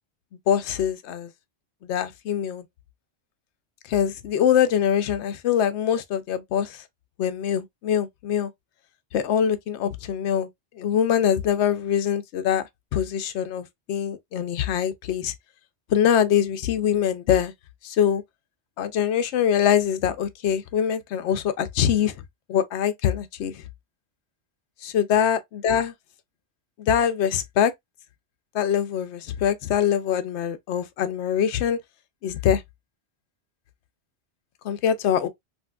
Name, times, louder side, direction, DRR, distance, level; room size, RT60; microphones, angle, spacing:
voice 1, 0.5-1.3 1.8-2.6 3.9-6.8 7.2-8.5 9.1-10.5 10.7-12.6 12.9-15.3 15.9-17.5 17.8-18.2 18.8-22.2 22.5-23.6 24.8-25.9 26.8-27.7 28.5-31.8 32.2-32.6 34.7-35.3, left 9 dB, 75° left, 0.9 m, -23 dB
3.6 x 2.5 x 2.2 m
omnidirectional pair, 1.2 m